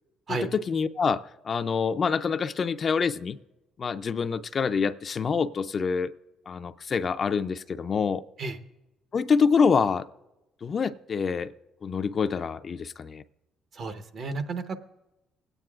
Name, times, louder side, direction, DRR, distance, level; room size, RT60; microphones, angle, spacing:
voice 1, 0.3-3.4 3.8-6.1 6.5-8.2 9.1-10.1 10.6-11.5 11.8-13.2, left 5 dB, 40° left, 0.4 m, -26 dB
voice 2, 13.7-14.8, right 3 dB, 55° right, 0.9 m, -32 dB
21.5 x 9.0 x 2.4 m
cardioid pair, 90°, 0 cm